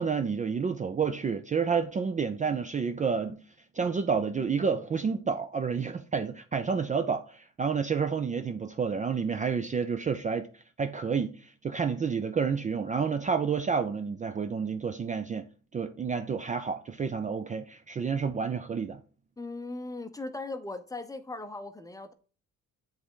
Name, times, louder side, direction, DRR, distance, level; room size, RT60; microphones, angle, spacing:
voice 1, 0.0-3.4 3.7-19.0, right 6 dB, 25° right, 0.4 m, -30 dB
voice 2, 19.4-22.1, left 2 dB, 10° left, 0.6 m, -38 dB
7.7 x 3.4 x 3.7 m
cardioid pair, 90°, 30 cm